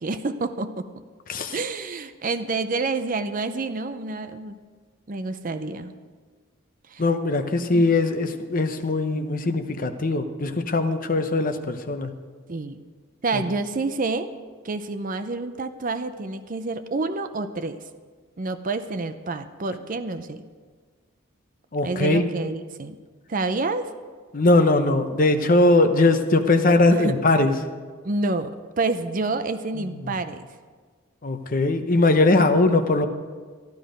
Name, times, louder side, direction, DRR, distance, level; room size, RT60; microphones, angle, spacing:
voice 1, 0.0-0.9 1.5-4.5 5.1-5.9 6.9-7.0 7.7-7.8 12.5-12.8 13.2-14.3 14.6-17.8 18.4-20.5 21.8-23.0 23.3-23.9 26.9-27.2 28.0-30.5, right 3 dB, 40° right, 10 dB, 0.6 m, -28 dB
voice 2, 7.0-12.1 21.7-22.3 24.3-27.5 29.8-30.1 31.2-33.1, left 2 dB, 45° left, 8 dB, 0.8 m, -20 dB
13.0 x 12.0 x 5.2 m, 1.5 s
head